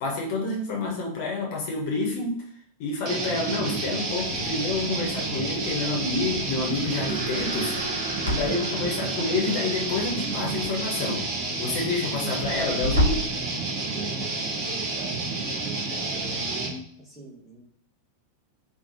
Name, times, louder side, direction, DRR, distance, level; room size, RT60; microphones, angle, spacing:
voice 1, 0.0-2.4 2.8-7.7 8.3-11.3 11.6-13.2, left 3 dB, 50° left, -1 dB, 0.6 m, -28 dB
sound 1, 3.0-16.8, right 3 dB, 40° right, 0.7 m, -30 dB
Crackle, 4.1-13.4, equal, 85° left, 0.7 m, -33 dB
sound 2, 6.6-12.0, right 3 dB, 70° right, 0.4 m, -40 dB
voice 2, 13.9-15.2 15.9-17.6, right 1 dB, 5° right, -5 dB, 1.0 m, -44 dB
2.9 x 2.1 x 2.5 m, 0.65 s
figure-of-eight pair, 90°, 0 cm